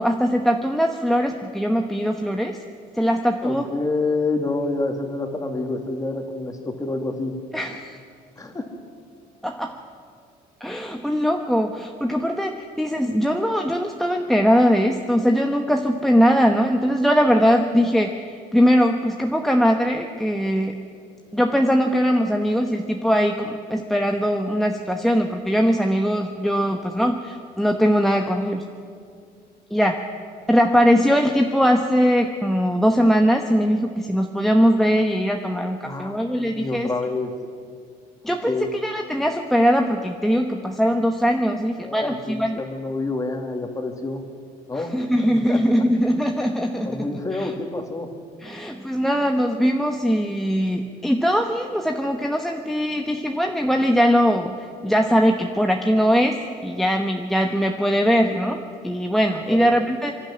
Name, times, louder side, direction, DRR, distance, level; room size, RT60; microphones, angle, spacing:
voice 1, 0.0-2.6 2.9-3.6 7.5-8.0 9.4-9.8 10.6-18.2 18.5-20.8 21.3-28.6 29.7-30.0 30.5-36.9 38.2-42.6 44.8-47.5 48.4-60.2, equal, ahead, 3 dB, 1.1 m, -21 dB
voice 2, 3.4-7.3 8.4-8.6 35.8-36.3 36.5-37.3 38.5-38.7 41.8-44.2 44.7-44.9 45.2-45.8 46.8-48.1 59.5-59.7, left 3 dB, 20° left, 4 dB, 2.5 m, -28 dB
26.0 x 11.5 x 9.7 m, 2.2 s
cardioid pair, 110°, 17 cm